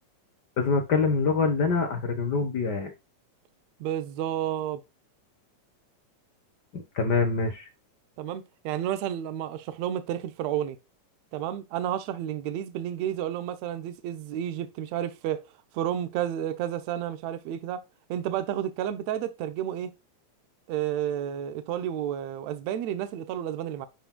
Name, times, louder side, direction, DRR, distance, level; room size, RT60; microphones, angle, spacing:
voice 1, 0.6-2.9 6.7-7.7, left 4 dB, 70° left, 0.9 m, -25 dB
voice 2, 3.8-4.8 8.2-10.8 11.3-15.4 15.7-17.8 18.1-19.9 20.7-23.9, right 11 dB, 75° right, 1.9 m, -31 dB
11.5 x 3.9 x 2.2 m
omnidirectional pair, 3.3 m